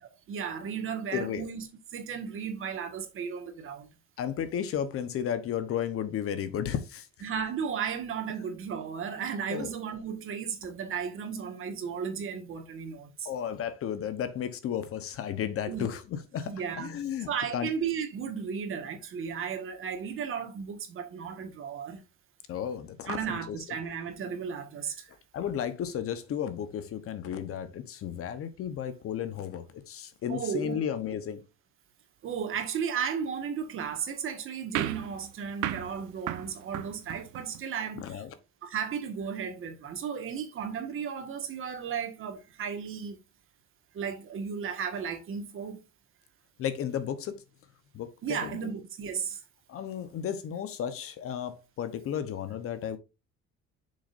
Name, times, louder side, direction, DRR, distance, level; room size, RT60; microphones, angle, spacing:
voice 1, 0.3-1.7 1.9-3.9 7.2-13.3 15.7-15.9 16.5-22.0 23.1-25.1 30.3-30.8 32.2-38.2 38.6-43.2 43.9-45.8 48.2-49.4, right 7 dB, 45° right, 1.7 m, -34 dB
voice 2, 1.1-1.5 4.2-7.1 9.5-9.7 13.2-16.5 16.8-17.7 22.5-23.6 25.3-31.4 38.0-38.3 46.6-47.4 47.9-48.6 49.7-53.0, left 9 dB, 50° left, 1.0 m, -33 dB
sound 1, 34.7-37.6, right 12 dB, 85° right, 1.0 m, -35 dB
7.9 x 6.4 x 2.6 m
cardioid pair, 160°, 29 cm